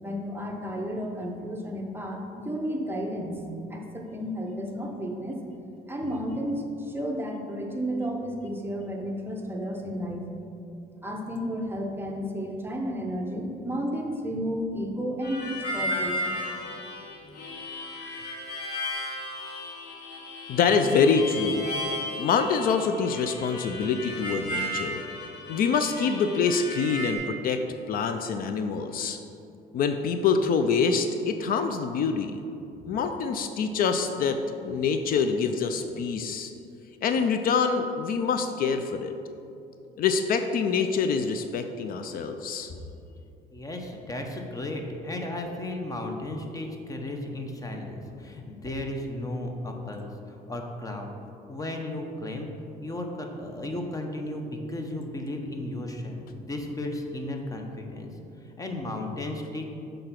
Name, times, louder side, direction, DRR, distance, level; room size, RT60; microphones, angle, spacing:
voice 1, 0.0-3.4 3.7-5.4 5.9-10.2 11.0-16.4 17.2-17.4, equal, 15° right, 1 dB, 0.8 m, -32 dB
Harmonica, 15.2-27.2, left 1 dB, 90° left, 1.5 m, -34 dB
voice 2, 20.5-21.7 22.2-25.0 25.5-27.6 27.9-29.2 29.7-32.3 32.9-36.5 37.0-39.1 40.0-42.7, left 5 dB, 60° left, 7 dB, 0.4 m, -25 dB
voice 3, 43.5-51.1 51.5-52.5 52.8-58.1 58.6-59.6, left 1 dB, 20° left, 3 dB, 0.8 m, -34 dB
6.6 x 3.9 x 5.8 m, 2.7 s
cardioid pair, 110°, 17 cm